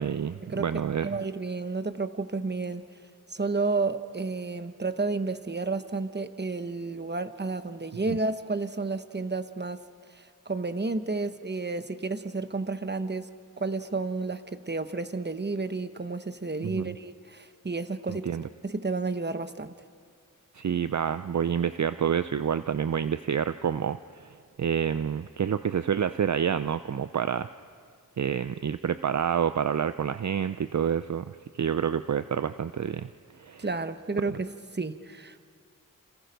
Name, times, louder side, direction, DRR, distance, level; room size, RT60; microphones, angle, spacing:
voice 1, 0.0-1.1 8.1-8.2 16.6-16.9 18.1-18.4 20.5-27.5 28.2-31.3 31.6-33.1 33.4-33.7, right 8 dB, 60° right, 12 dB, 0.5 m, -28 dB
voice 2, 1.0-2.8 3.3-9.8 10.1-13.3 13.6-18.3 18.6-19.7 33.6-35.4, right 3 dB, 30° right, 10 dB, 1.1 m, -31 dB
29.0 x 27.0 x 5.3 m, 2.1 s
wide cardioid pair, 55°, 33 cm